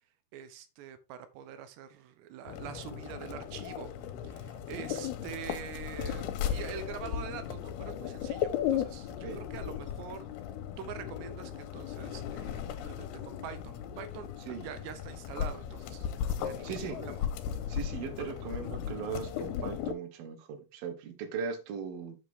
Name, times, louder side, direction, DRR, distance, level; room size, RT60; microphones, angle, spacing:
voice 1, 0.3-3.9 4.2-10.3 10.8-17.2, right 9 dB, 90° right, 3.2 m, -45 dB
sound 1, 2.5-19.9, left 9 dB, 75° left, 2.8 m, -36 dB
voice 2, 16.6-17.0 17.7-22.2, right 6 dB, 65° right, 3.1 m, -38 dB
7.9 x 7.8 x 3.6 m
omnidirectional pair, 4.8 m